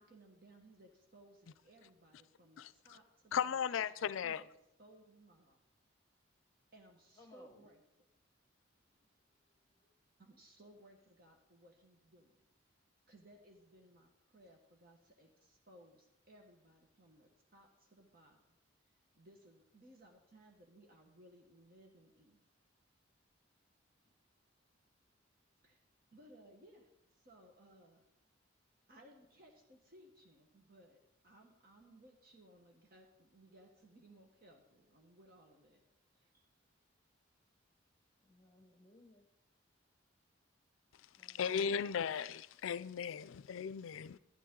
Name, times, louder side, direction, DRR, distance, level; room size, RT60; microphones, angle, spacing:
voice 1, 0.0-4.5 4.8-5.6 6.7-7.8 10.2-12.4 13.1-18.6 19.1-22.4 24.0-24.1 25.6-25.8 26.1-28.1 28.9-31.0 31.2-35.8 36.1-36.4, right 1 dB, 50° right, 1.3 m, -62 dB
voice 2, 3.3-4.4 41.3-44.2, left 7 dB, 80° left, 0.4 m, -36 dB
voice 3, 7.2-7.7 9.5-9.9 38.2-39.3 41.2-42.1, left 2 dB, 15° left, 1.2 m, -63 dB
12.0 x 10.0 x 3.8 m
head